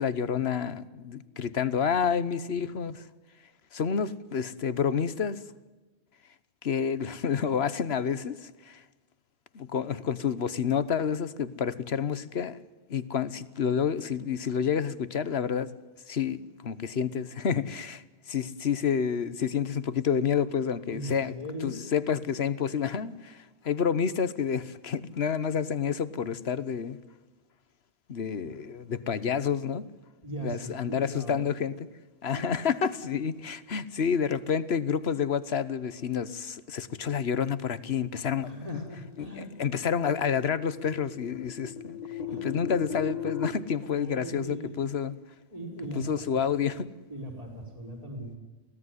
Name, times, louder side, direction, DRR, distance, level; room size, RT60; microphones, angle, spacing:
voice 1, 0.0-3.0 3.7-5.4 6.6-8.8 9.5-12.6 12.9-15.7 16.1-21.3 21.6-27.0 28.1-29.8 30.4-31.7 32.2-38.8 39.2-42.0 42.4-45.1 46.0-46.9, left 7 dB, 65° left, 16 dB, 1.3 m, -29 dB
voice 2, 20.9-21.8 30.2-31.5 32.3-32.5 38.4-39.5 42.3-42.7 43.8-44.9 45.5-46.8 47.1-48.4, right 1 dB, 35° right, 2 dB, 4.9 m, -39 dB
sound 1, 38.8-43.5, left 7 dB, 35° left, 1.6 m, -37 dB
24.0 x 17.0 x 9.7 m, 1.2 s
omnidirectional pair, 1.1 m